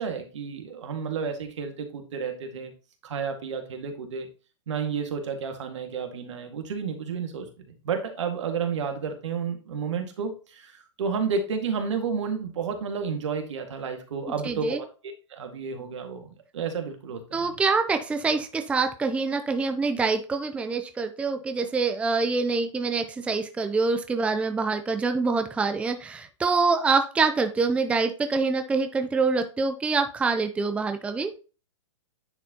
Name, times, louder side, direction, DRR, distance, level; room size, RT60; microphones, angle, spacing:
voice 1, 0.0-2.7 3.0-4.3 4.7-14.9 15.3-17.5, right 6 dB, 70° right, 5 dB, 1.9 m, -31 dB
voice 2, 14.4-14.8 17.3-31.3, right 4 dB, 10° right, 7 dB, 0.6 m, -25 dB
9.9 x 4.2 x 2.8 m, 0.35 s
hypercardioid pair, 125°, 16 cm